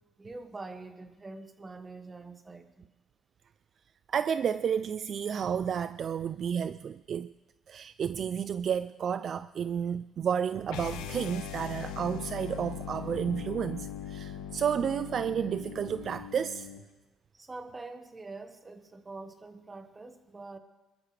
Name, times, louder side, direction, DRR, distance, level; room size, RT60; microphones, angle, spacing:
voice 1, 0.2-2.9 17.3-20.6, right 3 dB, 25° right, 8 dB, 1.4 m, -45 dB
voice 2, 4.1-7.3 7.7-16.7, right 8 dB, 55° right, 14 dB, 0.4 m, -31 dB
sound 1, 10.7-16.9, left 9 dB, 85° left, 1.1 m, -40 dB
22.0 x 13.5 x 3.3 m, 1.1 s
supercardioid pair, 80°, 0 cm